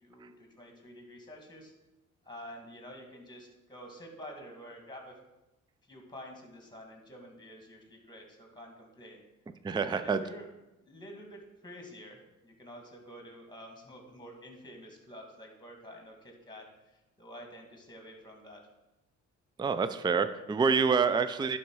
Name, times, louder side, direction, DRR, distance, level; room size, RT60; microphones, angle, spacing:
voice 1, 0.0-1.7 2.3-5.1 5.9-9.2 9.8-10.5 10.8-18.6, equal, 15° left, 2 dB, 2.1 m, -49 dB
voice 2, 9.6-10.2 19.6-21.6, right 5 dB, 15° right, 11 dB, 0.4 m, -27 dB
10.5 x 4.1 x 4.7 m, 0.99 s
cardioid pair, 90°, 30 cm